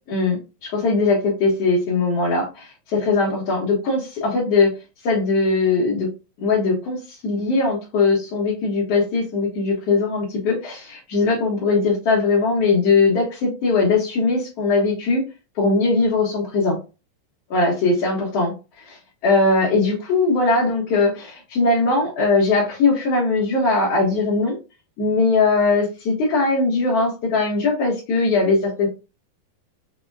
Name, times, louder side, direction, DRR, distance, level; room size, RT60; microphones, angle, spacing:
voice 1, 0.1-4.7 5.0-6.1 6.4-15.2 15.6-16.8 17.5-18.5 18.9-24.6 25.0-28.9, left 3 dB, 65° left, -6 dB, 1.7 m, -20 dB
5.3 x 2.1 x 2.2 m, 0.29 s
omnidirectional pair, 3.9 m